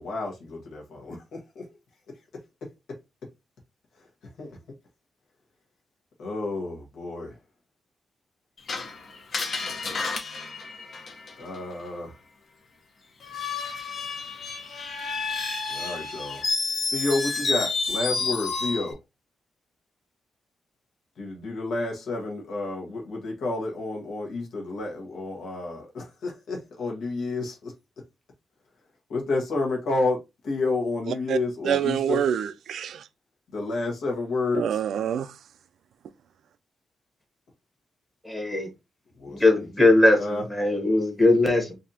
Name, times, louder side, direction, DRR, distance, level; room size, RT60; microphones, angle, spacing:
voice 1, 0.0-1.6 4.4-4.6 6.2-7.4 11.4-12.2 15.7-16.4 16.9-19.0 21.2-27.7 29.1-30.2 30.4-32.2 33.5-34.8 39.2-39.7 40.1-40.4, left 3 dB, 75° left, 1.2 m, -30 dB
Screech, 8.7-11.6 13.2-18.9, left 4 dB, 45° left, 0.8 m, -30 dB
voice 2, 31.6-33.0 34.6-35.3, right 9 dB, 75° right, 0.3 m, -26 dB
voice 3, 38.2-38.7 39.3-41.7, left 2 dB, 10° left, 1.1 m, -20 dB
4.1 x 2.7 x 2.7 m
wide cardioid pair, 165°, 0 cm